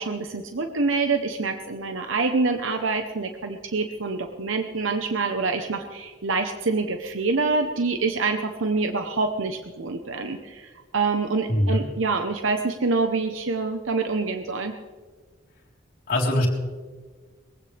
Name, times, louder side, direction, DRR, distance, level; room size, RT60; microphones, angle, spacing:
voice 1, 0.0-14.7, right 3 dB, 80° right, 6 dB, 0.9 m, -26 dB
voice 2, 11.5-11.8 16.1-16.5, left 1 dB, 45° left, -4 dB, 3.8 m, -21 dB
21.5 x 16.0 x 3.4 m, 1.4 s
head